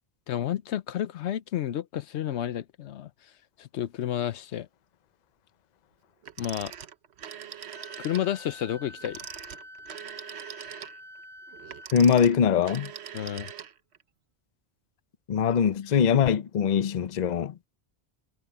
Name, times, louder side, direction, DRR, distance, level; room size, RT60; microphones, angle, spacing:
voice 1, 0.3-3.1 3.6-4.7 6.4-6.7 8.0-9.2 13.1-13.5, left 11 dB, 85° left, 1.0 m, -31 dB
Telephone, 6.2-8.3 9.0-14.0, right 8 dB, 75° right, 1.1 m, -42 dB
Wind instrument woodwind instrument, 7.7-11.9, left 1 dB, 15° left, 7.0 m, -47 dB
voice 2, 11.9-12.9 15.3-17.6, left 7 dB, 45° left, 0.7 m, -22 dB
omnidirectional pair, 1.1 m